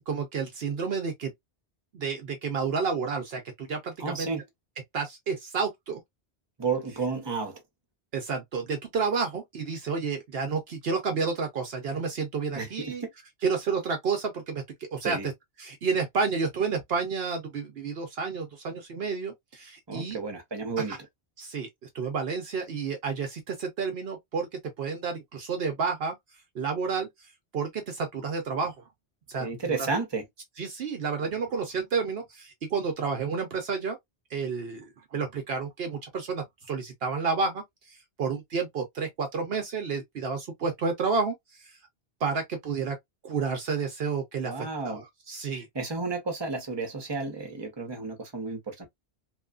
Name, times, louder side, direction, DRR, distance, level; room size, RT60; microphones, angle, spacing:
voice 1, 0.1-1.3 1.9-4.3 4.9-6.0 8.1-13.0 13.4-14.6 14.9-15.3 15.6-20.2 20.8-21.0 21.4-26.2 26.5-27.1 27.5-28.7 29.3-29.9 30.6-34.0 34.3-41.8 42.2-43.0 43.2-45.7, right 5 dB, 65° right, 0.9 m, -30 dB
voice 2, 4.0-4.4 6.6-7.6 12.5-13.1 15.0-15.3 19.9-20.9 29.4-30.2 44.4-45.0 45.5-48.9, right 4 dB, 25° right, 0.9 m, -32 dB
2.9 x 2.3 x 2.3 m
omnidirectional pair, 1.1 m